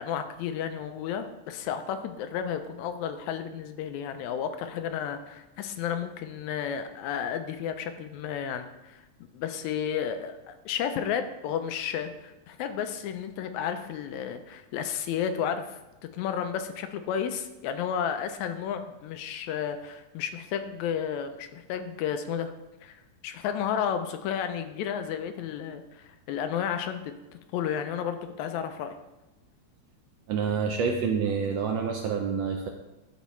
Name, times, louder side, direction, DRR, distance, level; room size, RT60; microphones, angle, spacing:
voice 1, 0.0-9.1 9.3-15.8 16.1-22.5 22.8-27.1 27.5-29.0, left 8 dB, 80° left, 8 dB, 1.8 m, -32 dB
voice 2, 30.3-32.7, right 6 dB, 75° right, 2 dB, 1.5 m, -27 dB
12.5 x 4.2 x 3.1 m, 1.0 s
omnidirectional pair, 3.4 m